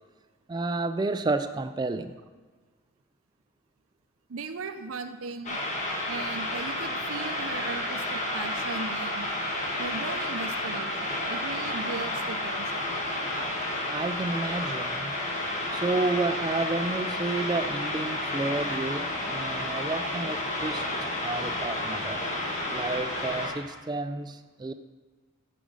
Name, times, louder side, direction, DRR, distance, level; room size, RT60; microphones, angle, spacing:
voice 1, 0.5-2.1 13.9-15.2 15.7-20.9 21.2-22.2 22.7-24.7, right 2 dB, 20° right, 10 dB, 0.3 m, -31 dB
voice 2, 4.3-5.6 6.1-9.3 9.8-12.8, right 4 dB, 80° right, 9 dB, 0.5 m, -37 dB
sound 1, 5.4-23.5, left 1 dB, 35° left, 1.4 m, -31 dB
8.4 x 5.0 x 5.4 m, 1.4 s
head